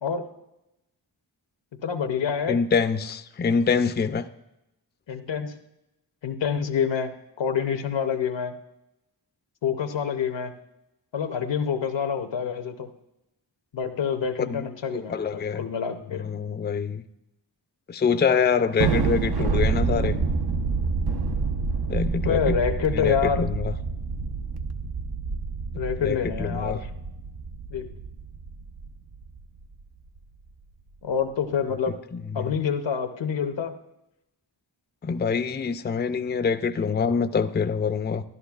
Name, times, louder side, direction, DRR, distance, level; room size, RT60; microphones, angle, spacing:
voice 1, 1.7-2.6 5.1-5.5 6.2-8.6 9.6-10.5 11.1-12.9 13.7-16.3 22.2-23.5 25.8-26.9 27.7-27.9 31.0-32.0 32.3-33.8, left 7 dB, 90° left, 0.8 m, -27 dB
voice 2, 2.5-4.2 14.5-15.6 16.2-17.0 17.9-20.2 21.9-22.6 22.9-23.7 26.0-26.8 32.3-32.4 35.0-38.2, left 6 dB, 25° left, 0.4 m, -25 dB
Thunder, 18.8-29.4, right 4 dB, 65° right, 0.7 m, -27 dB
13.5 x 11.0 x 2.4 m
wide cardioid pair, 75°, 43 cm